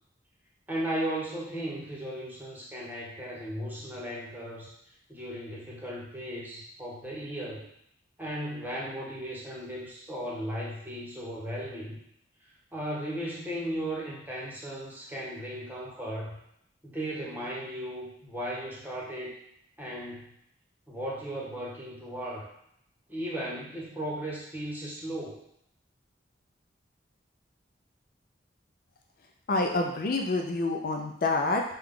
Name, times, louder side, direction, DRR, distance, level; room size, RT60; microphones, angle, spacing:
voice 1, 0.7-4.7 5.1-7.7 8.2-12.0 12.7-16.4 16.8-19.4 19.8-20.3 20.9-22.5 23.1-25.4, right 1 dB, 10° right, -5 dB, 0.9 m, -36 dB
voice 2, 29.5-31.6, left 2 dB, 50° left, 2 dB, 0.4 m, -27 dB
5.3 x 2.3 x 3.6 m, 0.74 s
head